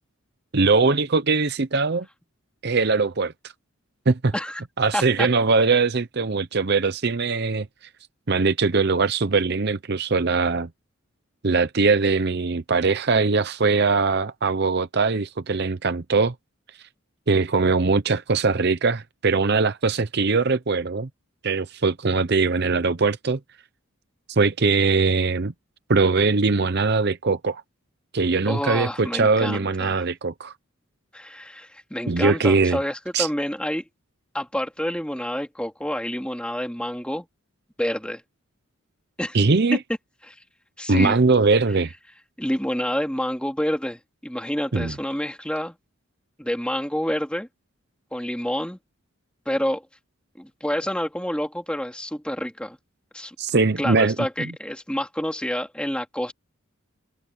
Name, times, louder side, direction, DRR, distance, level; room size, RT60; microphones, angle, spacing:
voice 1, 0.5-2.1 2.6-3.3 4.1-4.3 4.8-7.7 8.3-10.7 11.4-16.3 17.3-21.1 21.4-23.4 24.3-25.5 25.9-27.6 28.1-30.5 32.1-32.8 33.1-33.3 39.3-39.8 40.9-41.9 44.7-44.9 53.4-54.2, right 4 dB, 50° right, 0.7 m, -21 dB
voice 2, 4.9-5.3 28.5-30.0 31.1-33.8 34.3-37.3 37.8-38.2 39.2-39.4 40.3-40.4 40.8-41.2 42.4-45.7 46.4-47.5 48.1-48.8 49.4-49.9 50.4-52.8 53.1-53.3 53.8-56.3, equal, 5° left, 2.9 m, -28 dB
head